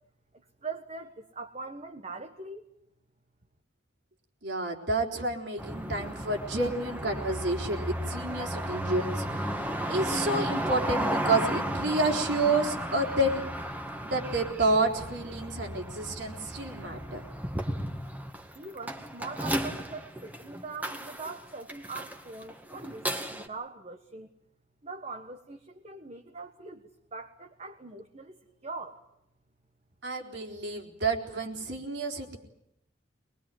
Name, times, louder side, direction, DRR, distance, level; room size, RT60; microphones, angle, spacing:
voice 1, 0.6-2.6 18.5-24.3 24.8-28.4 28.6-29.0, right 3 dB, 35° right, 5 dB, 1.5 m, -42 dB
voice 2, 4.4-13.4 14.0-17.2 30.0-32.4, right 2 dB, 65° right, 2 dB, 3.9 m, -29 dB
sound 1, 5.6-23.5, right 1 dB, 10° right, 2.0 m, -34 dB
23.0 x 21.5 x 9.2 m, 0.82 s
head